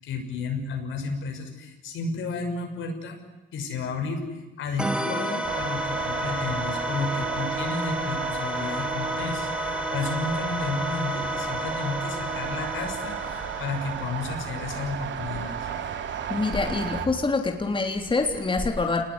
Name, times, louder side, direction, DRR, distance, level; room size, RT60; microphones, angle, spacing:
voice 1, 0.0-3.2 3.5-4.2 4.6-15.7, left 4 dB, 80° left, 4 dB, 6.3 m, -32 dB
sound 1, 4.8-14.2, right 1 dB, 5° right, 2.6 m, -31 dB
sound 2, 5.4-17.1, right 8 dB, 70° right, 2.7 m, -34 dB
voice 2, 16.3-19.0, left 3 dB, 25° left, 3 dB, 3.4 m, -25 dB
28.0 x 20.0 x 9.9 m, 1.1 s
cardioid pair, 90°, 20 cm